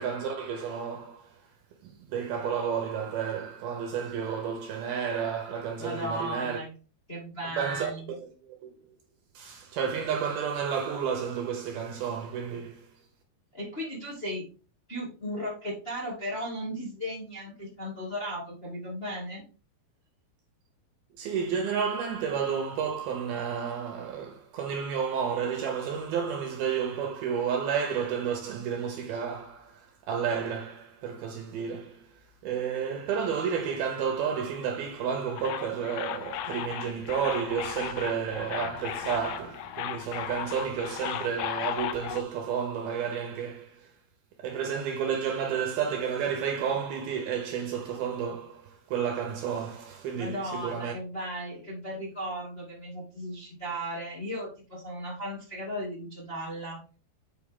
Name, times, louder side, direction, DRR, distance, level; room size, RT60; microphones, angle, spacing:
voice 1, 0.0-1.4 1.8-6.6 7.6-8.2 8.5-8.7 9.3-12.9 21.2-32.1 32.4-43.9 44.4-50.9, right 7 dB, 70° right, 2.6 m, -31 dB
voice 2, 5.8-6.7 7.1-8.1 12.5-12.6 13.5-14.4 14.9-19.4 50.1-56.8, equal, 20° left, 1.6 m, -36 dB
sound 1, 35.4-42.2, left 11 dB, 85° left, 2.1 m, -36 dB
7.7 x 5.5 x 3.7 m
omnidirectional pair, 5.1 m